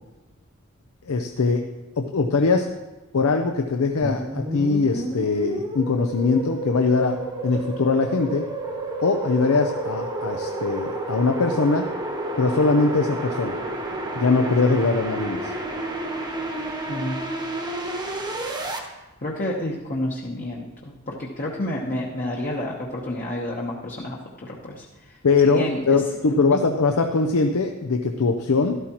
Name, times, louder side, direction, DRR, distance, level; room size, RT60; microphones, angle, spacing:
voice 1, 1.1-1.6 2.0-2.7 3.1-8.5 9.0-11.9 12.4-13.6 14.2-15.5 25.2-28.8, left 4 dB, 80° left, 5 dB, 0.6 m, -21 dB
sound 1, 4.0-18.8, right 2 dB, 20° right, 1.0 m, -30 dB
voice 2, 19.2-25.2 25.4-26.0 26.3-26.6, left 1 dB, 40° left, -3 dB, 1.0 m, -30 dB
12.5 x 12.5 x 3.0 m, 1.1 s
head